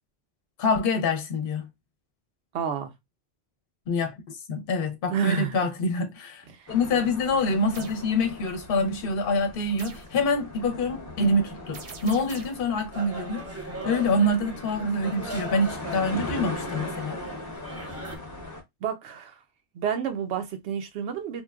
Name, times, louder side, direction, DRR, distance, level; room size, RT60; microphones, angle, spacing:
voice 1, 0.6-1.7 3.9-17.2, left 2 dB, 65° left, 0.7 m, -26 dB
voice 2, 2.5-2.9 5.1-5.7 6.5-6.7 18.8-19.4 19.7-21.4, right 7 dB, 85° right, 0.8 m, -29 dB
sound 1, 6.7-18.6, left 2 dB, 20° left, 0.6 m, -39 dB
sound 2, 7.7-8.1 9.8-10.2 11.7-12.7, right 5 dB, 55° right, 0.4 m, -43 dB
sound 3, 12.9-18.2, right 2 dB, 15° right, 0.7 m, -39 dB
3.0 x 2.1 x 2.2 m
omnidirectional pair, 1.1 m